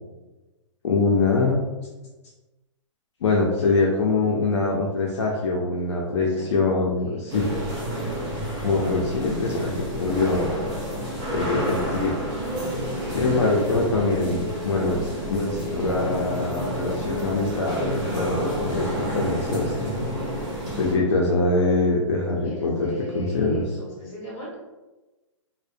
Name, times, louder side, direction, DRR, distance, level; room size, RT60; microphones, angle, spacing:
voice 1, 0.8-1.6 3.2-7.5 8.6-10.5 11.3-12.1 13.1-15.0 15.3-19.9 20.8-22.9 23.1-23.6, left 3 dB, 60° left, -3 dB, 0.4 m, -23 dB
voice 2, 6.2-6.8 7.0-7.2 22.4-24.6, equal, 20° left, -7 dB, 1.2 m, -37 dB
sound 1, 7.3-20.9, equal, 35° right, 1.0 m, -29 dB
2.6 x 2.1 x 2.5 m, 1.1 s
hypercardioid pair, 170°, 17 cm